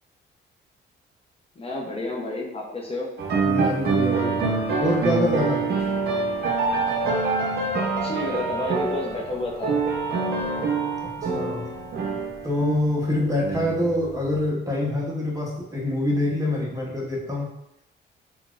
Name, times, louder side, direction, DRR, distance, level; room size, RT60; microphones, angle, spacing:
voice 1, 1.6-3.1 7.9-9.8, left 2 dB, 30° left, -2 dB, 0.6 m, -30 dB
sound 1, 3.2-14.5, right 4 dB, 55° right, 0.6 m, -26 dB
voice 2, 3.4-4.4 4.8-5.7 11.0-11.6 12.4-17.5, left 1 dB, 15° right, -2 dB, 0.8 m, -25 dB
3.9 x 2.3 x 2.4 m, 0.85 s
cardioid pair, 90°, 20 cm